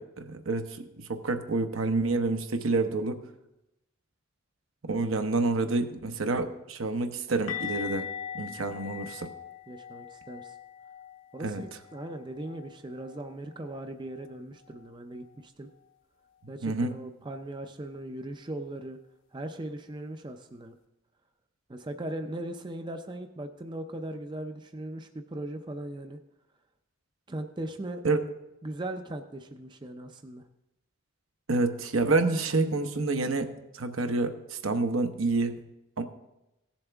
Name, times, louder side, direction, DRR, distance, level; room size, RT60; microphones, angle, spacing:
voice 1, 0.0-3.2 4.8-8.1 8.3-9.3 11.4-11.6 16.6-16.9 28.0-28.2 31.5-35.5 36.0-36.1, right 3 dB, 75° right, 6 dB, 0.9 m, -28 dB
sound 1, 7.5-13.3 13.5-13.8 14.1-14.3 17.5-17.6, left 8 dB, 60° left, 1.0 m, -41 dB
voice 2, 9.7-10.5 11.3-15.7 16.5-19.0 19.3-20.7 21.7-26.2 27.3-28.0 28.6-30.5, right 1 dB, 20° right, 6 dB, 0.4 m, -39 dB
16.5 x 7.2 x 3.4 m, 0.93 s
head